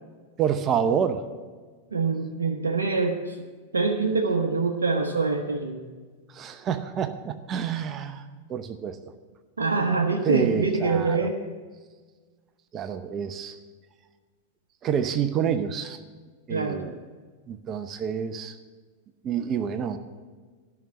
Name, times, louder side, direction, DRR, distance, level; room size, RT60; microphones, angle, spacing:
voice 1, 0.4-1.2 6.3-8.2 8.5-9.0 10.2-11.3 12.7-13.6 14.8-16.0 16.5-17.0 17.5-18.6 19.2-20.0, right 8 dB, 35° right, 10 dB, 0.8 m, -28 dB
voice 2, 1.9-3.3 3.7-5.8 9.6-11.4 16.5-16.8, right 4 dB, 80° right, 2 dB, 0.9 m, -25 dB
12.5 x 6.2 x 8.2 m, 1.4 s
hypercardioid pair, 95°, 0 cm